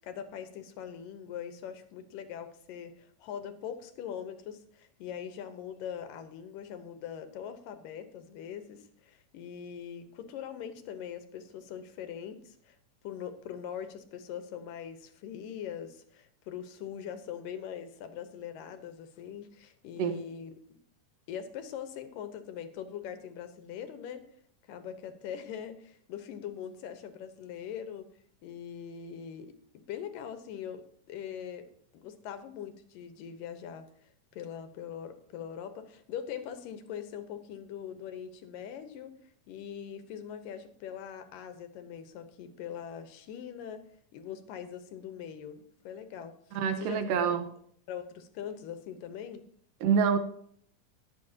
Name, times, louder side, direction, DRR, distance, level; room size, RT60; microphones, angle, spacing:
voice 1, 0.0-12.8 13.0-20.8 21.3-24.2 24.7-28.1 28.4-29.5 29.9-31.6 31.9-33.9 34.3-39.1 39.5-43.8 44.1-47.3 47.9-49.4, left 8 dB, 90° left, 2.8 m, -42 dB
voice 2, 46.6-47.5 49.8-50.2, right 7 dB, 85° right, 2.7 m, -26 dB
20.5 x 7.6 x 2.9 m
omnidirectional pair, 3.8 m